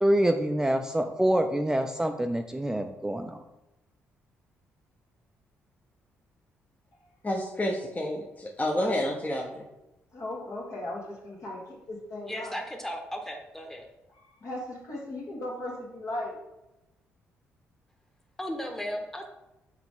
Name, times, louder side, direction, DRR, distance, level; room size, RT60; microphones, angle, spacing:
voice 1, 0.0-3.4, right 1 dB, 10° right, 6 dB, 0.5 m, -26 dB
voice 2, 7.2-9.7, left 1 dB, 25° left, -1 dB, 0.9 m, -29 dB
voice 3, 10.1-12.6 14.1-16.3, left 1 dB, 60° left, -3 dB, 1.9 m, -37 dB
voice 4, 12.3-13.9 18.4-19.3, equal, 5° left, 3 dB, 1.1 m, -35 dB
5.8 x 4.8 x 3.7 m, 0.95 s
hypercardioid pair, 50°, 6 cm